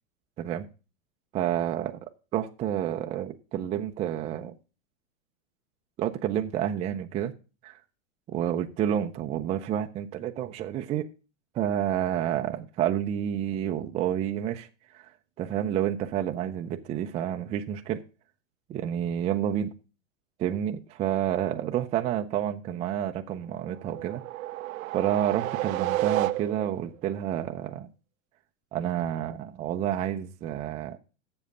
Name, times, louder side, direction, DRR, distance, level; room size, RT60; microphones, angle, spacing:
voice 1, 1.3-4.6 6.0-7.3 7.6-7.8 8.3-11.1 11.5-14.7 14.9-15.1 15.4-18.0 18.7-19.7 20.4-24.2 24.9-27.9 28.7-31.0, right 10 dB, 15° right, 0.4 m, -29 dB
sound 1, 23.6-26.9, right 16 dB, 80° right, 0.6 m, -31 dB
7.5 x 6.9 x 6.5 m
hypercardioid pair, 135°, 41 cm